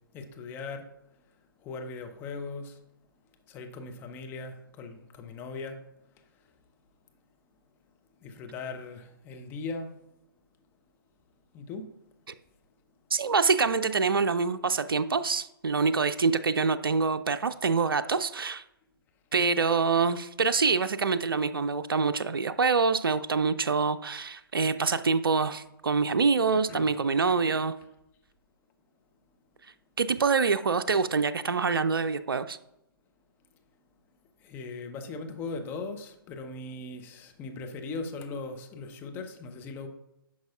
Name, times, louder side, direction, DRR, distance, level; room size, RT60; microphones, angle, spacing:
voice 1, 0.1-0.9 1.6-2.8 3.5-5.8 8.2-9.9 11.5-11.9 26.5-26.9 34.4-39.9, left 3 dB, 15° left, 5 dB, 0.7 m, -39 dB
voice 2, 13.1-18.6 19.3-27.7 30.0-32.6, right 4 dB, 70° right, 12 dB, 0.4 m, -25 dB
10.0 x 6.0 x 2.4 m, 0.87 s
figure-of-eight pair, 130°, 12 cm